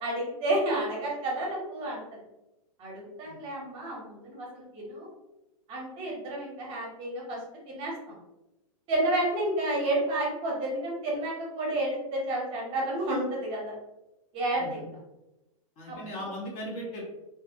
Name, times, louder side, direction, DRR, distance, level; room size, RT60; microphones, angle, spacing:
voice 1, 0.0-2.0 2.8-5.1 5.7-7.4 7.7-8.2 8.9-13.7 14.3-14.9 15.9-16.0, right 1 dB, 30° right, -3 dB, 0.8 m, -30 dB
voice 2, 15.8-17.0, equal, 40° left, -3 dB, 0.8 m, -38 dB
2.4 x 2.1 x 2.6 m, 0.95 s
hypercardioid pair, 135°, 19 cm